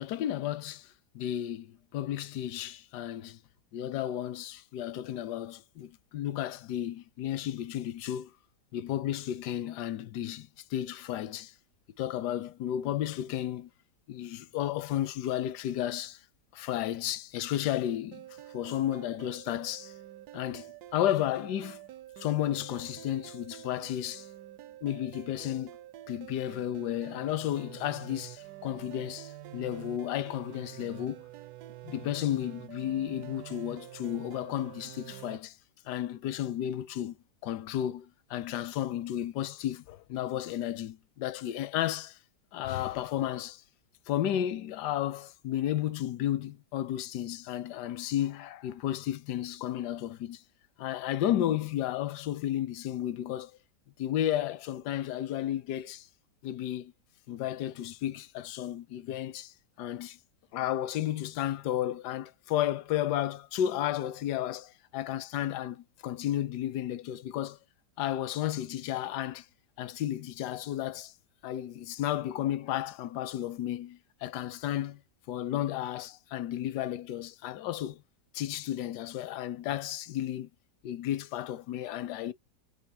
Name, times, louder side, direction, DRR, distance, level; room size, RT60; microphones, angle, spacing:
voice 1, 0.0-3.4 3.7-8.3 8.7-11.5 12.0-13.7 14.1-16.2 16.5-18.2 18.5-19.9 20.3-21.8 22.2-24.3 24.8-25.7 26.1-31.2 31.8-35.6 35.8-37.2 37.4-42.2 42.5-43.6 44.1-50.4 50.8-53.5 54.0-56.1 56.4-56.9 57.3-60.2 60.5-67.6 68.0-69.5 69.8-71.1 71.4-75.0 75.3-78.0 78.3-80.5 80.8-82.3, left 12 dB, 80° left, 1.2 m, -33 dB
sound 1, 18.1-35.4, right 14 dB, 75° right, 1.2 m, -47 dB
5.8 x 3.2 x 2.8 m
omnidirectional pair, 1.8 m